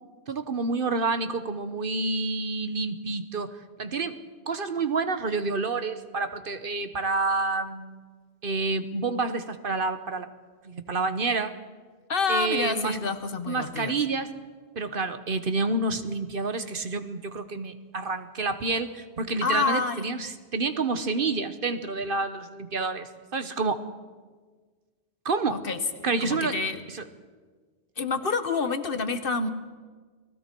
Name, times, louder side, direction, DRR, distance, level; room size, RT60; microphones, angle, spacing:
voice 1, 0.3-4.2 4.5-8.0 8.4-10.3 10.6-11.5 12.3-13.0 13.5-14.3 14.7-23.8 25.2-25.6 26.0-26.5 26.9-27.0, right 3 dB, 55° right, 10 dB, 1.2 m, -28 dB
voice 2, 12.1-13.9 19.4-20.1 25.5-25.8 26.2-26.8 28.0-29.5, left 4 dB, 55° left, 10 dB, 1.3 m, -28 dB
29.5 x 19.5 x 4.6 m, 1.5 s
omnidirectional pair, 1.1 m